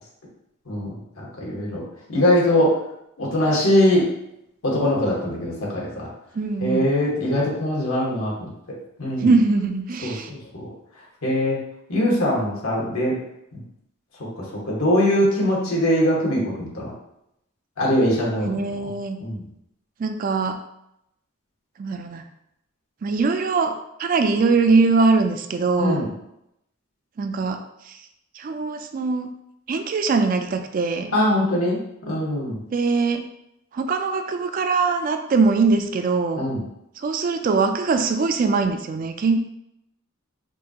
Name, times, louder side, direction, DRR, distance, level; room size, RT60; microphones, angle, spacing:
voice 1, 0.7-1.8 2.1-2.8 3.2-4.1 4.6-6.1 6.6-8.5 9.0-9.3 10.0-10.7 11.2-11.6 11.9-13.2 13.5-13.6 14.2-16.9 17.8-18.5 18.8-18.9 19.2-19.4 25.8-26.1 31.1-31.8 32.1-32.6 36.3-36.6, left 1 dB, 80° left, -4 dB, 1.4 m, -22 dB
voice 2, 6.4-6.8 9.2-10.3 18.4-19.2 20.0-20.6 21.8-22.2 23.0-23.7 24.0-26.1 27.2-28.0 28.4-29.3 29.7-31.1 32.7-33.3 33.7-36.5 37.0-39.4, right 4 dB, 40° right, 7 dB, 0.3 m, -22 dB
5.2 x 2.4 x 2.8 m, 0.80 s
head